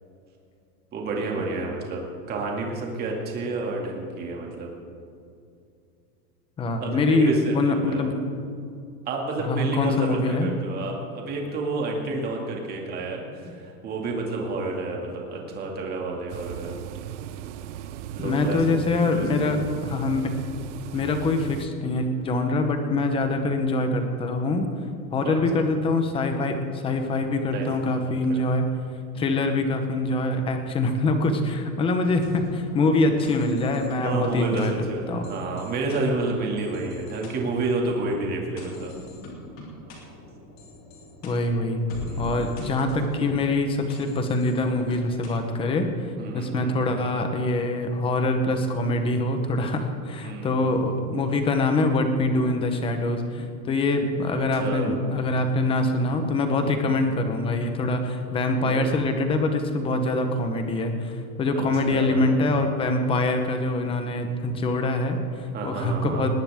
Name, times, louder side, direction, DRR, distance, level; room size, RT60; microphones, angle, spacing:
voice 1, 0.9-2.0 2.3-4.7 6.8-8.1 9.1-16.8 18.1-18.6 19.0-19.4 25.2-25.4 27.5-27.7 27.9-28.4 29.1-29.4 34.0-38.9 42.0-42.4 46.2-46.8 50.2-50.6 54.3-54.9 56.6-57.2 58.6-58.9 61.5-62.3 65.5-66.3, right 2 dB, 20° right, 0 dB, 2.3 m, -30 dB
voice 2, 6.6-8.2 9.4-10.5 18.2-20.4 20.9-24.7 25.1-28.7 29.1-35.3 41.2-41.8 42.2-45.9 46.3-66.3, left 2 dB, 10° left, 6 dB, 0.9 m, -24 dB
sound 1, 16.3-21.7, right 11 dB, 50° right, 0.6 m, -37 dB
sound 2, 32.0-45.9, equal, 25° left, 3.3 m, -43 dB
20.0 x 18.0 x 3.6 m, 2.5 s
supercardioid pair, 170°, 47 cm